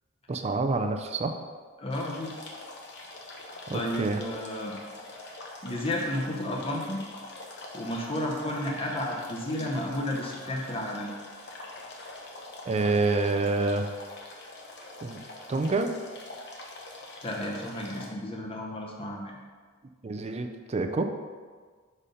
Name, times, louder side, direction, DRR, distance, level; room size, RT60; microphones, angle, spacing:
voice 1, 0.3-1.4 3.7-4.2 12.7-13.9 15.0-15.2 15.5-15.9 20.0-21.1, right 3 dB, 30° right, 6 dB, 0.4 m, -27 dB
voice 2, 1.8-2.3 3.7-4.8 5.6-7.0 7.7-11.1 17.2-19.4, left 1 dB, 25° left, -2 dB, 0.7 m, -32 dB
sound 1, 1.9-18.1, left 2 dB, 55° left, 0.9 m, -44 dB
5.2 x 4.2 x 5.0 m, 1.5 s
head